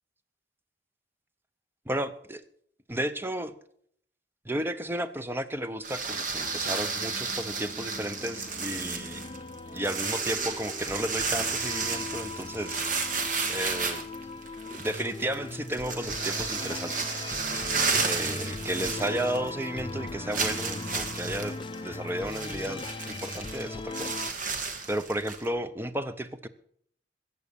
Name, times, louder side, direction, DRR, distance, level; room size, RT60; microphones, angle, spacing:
voice 1, 1.9-2.4 2.9-3.5 4.4-9.4 9.7-13.1 13.5-14.0 14.7-17.2 18.0-24.2 24.9-26.5, right 1 dB, 15° right, 12 dB, 0.6 m, -33 dB
sound 1, 5.8-19.6 19.9-20.0 20.3-25.5, right 4 dB, 50° right, 1.5 m, -32 dB
sound 2, 6.0-24.3, left 3 dB, 25° left, 0.5 m, -40 dB
14.0 x 8.3 x 6.9 m, 0.66 s
head